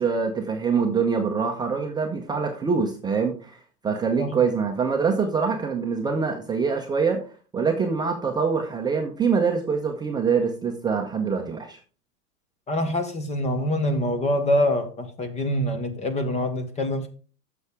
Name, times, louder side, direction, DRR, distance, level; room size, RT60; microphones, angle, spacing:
voice 1, 0.0-3.6 3.8-7.2 7.5-11.8, right 5 dB, 10° right, 0.8 m, -24 dB
voice 2, 12.7-17.1, left 1 dB, 15° left, 0.9 m, -25 dB
9.4 x 7.0 x 3.6 m
hypercardioid pair, 125°, 46 cm